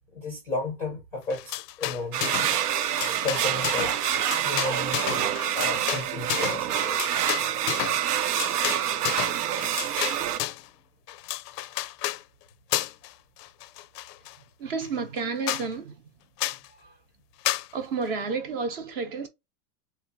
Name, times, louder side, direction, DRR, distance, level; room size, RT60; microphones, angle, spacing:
voice 1, 0.1-2.6 3.2-3.9 4.4-5.3 5.5-7.1 16.7-16.8, left 3 dB, 5° left, 0.5 m, -33 dB
sound 1, 1.3-2.6 2.8-10.7 11.1-12.2 12.7-13.1 13.4-14.4 14.8-14.9 15.2-15.3 15.5-15.7 16.4-16.7 17.4-17.7, left 15 dB, 85° left, 0.5 m, -32 dB
sound 2, 2.1-10.4, right 10 dB, 75° right, 0.7 m, -27 dB
voice 2, 14.6-16.0 16.8-17.0 17.7-19.3, right 4 dB, 35° right, 0.8 m, -31 dB
3.4 x 2.7 x 3.9 m
supercardioid pair, 165°, 47 cm